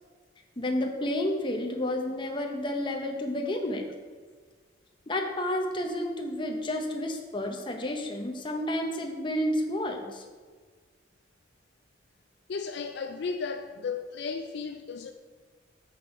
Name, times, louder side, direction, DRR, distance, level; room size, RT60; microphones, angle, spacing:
voice 1, 0.6-3.8 5.1-10.2, left 1 dB, 25° left, 2 dB, 0.7 m, -30 dB
voice 2, 12.5-15.1, left 5 dB, 60° left, 6 dB, 0.4 m, -34 dB
6.1 x 6.0 x 4.7 m, 1.5 s
head